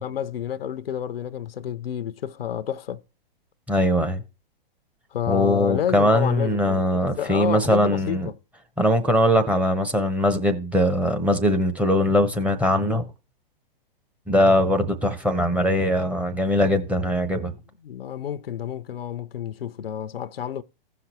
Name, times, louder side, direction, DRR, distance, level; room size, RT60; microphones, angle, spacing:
voice 1, 0.0-3.0 5.1-8.3 17.8-20.6, left 9 dB, 80° left, 0.7 m, -30 dB
voice 2, 3.7-4.2 5.3-8.3 8.8-13.1 14.3-17.5, equal, 5° right, 0.9 m, -21 dB
15.5 x 5.9 x 3.0 m
hypercardioid pair, 125°, 29 cm